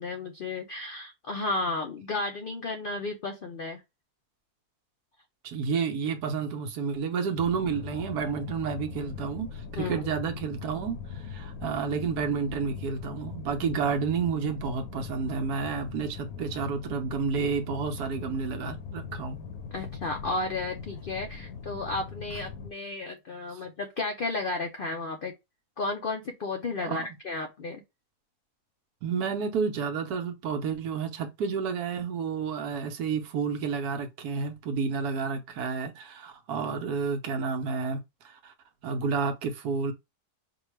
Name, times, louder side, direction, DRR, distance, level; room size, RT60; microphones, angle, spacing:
voice 1, 0.0-3.8 9.7-10.0 19.7-25.3 25.8-27.8, left 3 dB, 85° left, 0.4 m, -33 dB
voice 2, 5.4-19.4 23.5-23.6 26.8-27.1 29.0-38.0 38.2-38.5 38.8-39.9, right 5 dB, 75° right, 1.3 m, -30 dB
sound 1, 7.4-22.7, left 6 dB, 70° left, 1.0 m, -40 dB
4.9 x 2.3 x 3.1 m
omnidirectional pair, 1.7 m